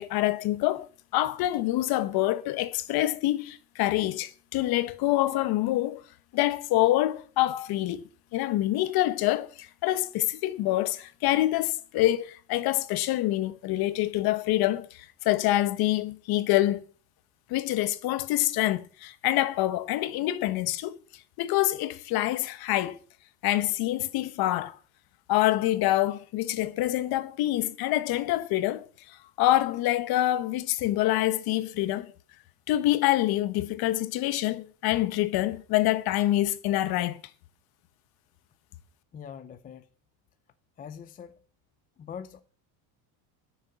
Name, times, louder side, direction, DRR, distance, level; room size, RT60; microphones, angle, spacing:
voice 1, 0.0-6.0 6.3-16.8 17.5-20.9 21.4-23.0 23.4-24.8 25.3-32.1 32.7-37.2, left 15 dB, 55° left, 1.0 m, -26 dB
voice 2, 39.1-39.9 40.8-41.4 42.0-42.4, left 7 dB, 20° left, 0.5 m, -42 dB
10.5 x 6.7 x 8.0 m
cardioid pair, 155°, 45 cm